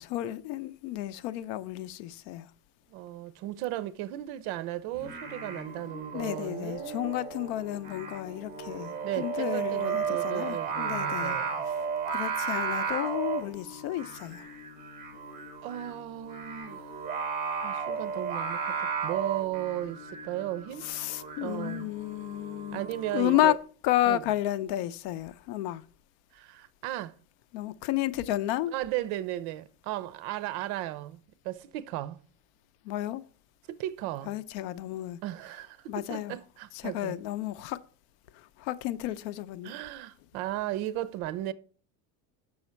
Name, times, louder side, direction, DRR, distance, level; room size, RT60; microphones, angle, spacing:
voice 1, 0.0-2.5 6.1-11.4 12.1-14.5 20.8-22.8 23.1-23.6 23.8-25.8 27.5-28.7 32.8-33.2 34.3-35.2 35.9-36.4 36.8-37.8 38.3-39.7, left 14 dB, 70° left, 0.7 m, -31 dB
voice 2, 2.9-7.2 9.0-11.7 15.6-16.9 17.6-20.9 21.4-21.9 22.7-23.6 24.0-24.2 26.3-27.1 28.7-32.2 33.7-34.3 35.2-37.2 39.6-41.5, right 14 dB, 60° right, 0.7 m, -35 dB
Singing, 4.9-23.4, right 6 dB, 20° right, 2.2 m, -35 dB
7.1 x 6.3 x 4.4 m
cardioid pair, 150°, 43 cm